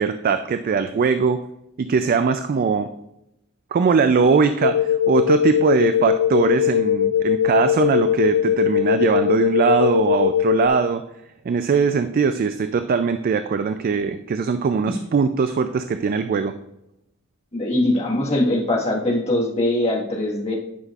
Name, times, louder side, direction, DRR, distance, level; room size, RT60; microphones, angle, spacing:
voice 1, 0.0-1.4 1.8-2.9 3.7-11.0 11.5-16.5, right 5 dB, 40° right, 9 dB, 0.3 m, -20 dB
sound 1, 4.6-10.7, left 10 dB, 70° left, 0.5 m, -20 dB
voice 2, 17.5-20.5, left 1 dB, 30° left, -3 dB, 1.5 m, -22 dB
11.0 x 5.7 x 2.4 m, 0.84 s
head